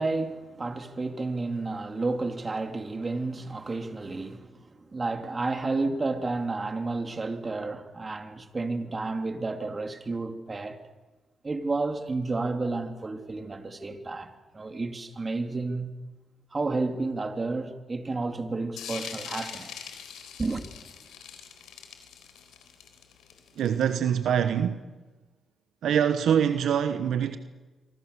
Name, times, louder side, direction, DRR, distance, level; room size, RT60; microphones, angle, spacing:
voice 1, 0.0-10.8 11.4-15.9 16.5-19.9 20.4-20.6, right 3 dB, 35° right, 3.1 m, -31 dB
sound 1, 18.8-24.1, left 8 dB, 90° left, 3.8 m, -42 dB
voice 2, 23.6-24.8 25.8-27.4, right 8 dB, 80° right, 1.2 m, -24 dB
26.5 x 24.0 x 6.9 m
cardioid pair, 65°, 0 cm